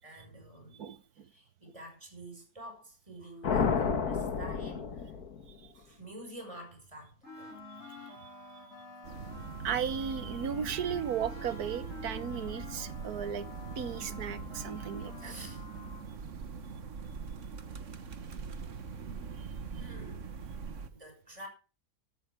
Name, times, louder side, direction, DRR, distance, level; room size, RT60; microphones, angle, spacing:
voice 1, 0.0-0.8 1.1-5.1 5.7-7.6 15.2-15.8 19.7-20.3 20.9-21.5, right 1 dB, 20° right, 5.7 m, -49 dB
voice 2, 0.8-1.3 9.6-13.5 13.8-15.3, right 8 dB, 80° right, 1.6 m, -35 dB
sound 1, 3.4-5.7, left 6 dB, 80° left, 2.0 m, -30 dB
sound 2, 7.2-16.1, left 2 dB, 45° left, 6.8 m, -48 dB
sound 3, 9.0-20.9, right 5 dB, 55° right, 1.6 m, -42 dB
14.5 x 13.5 x 3.5 m
omnidirectional pair, 1.6 m